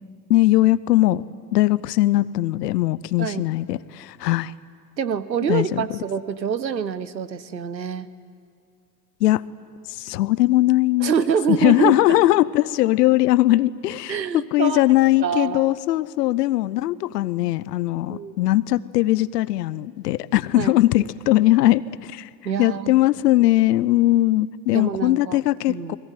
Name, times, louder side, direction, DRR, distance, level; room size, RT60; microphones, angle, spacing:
voice 1, 0.3-1.2 1.5-4.5 5.5-5.9 9.2-9.4 10.0-11.1 11.6-14.2 14.5-22.3 22.6-26.0, left 16 dB, 70° left, 19 dB, 0.9 m, -20 dB
voice 2, 5.0-8.1 11.0-12.2 14.1-14.8 15.2-15.7 18.1-18.3 20.5-20.7 22.4-22.9 24.7-25.4 25.7-26.0, right 7 dB, 85° right, 15 dB, 1.1 m, -25 dB
30.0 x 21.5 x 9.1 m, 2.3 s
figure-of-eight pair, 65°, 50 cm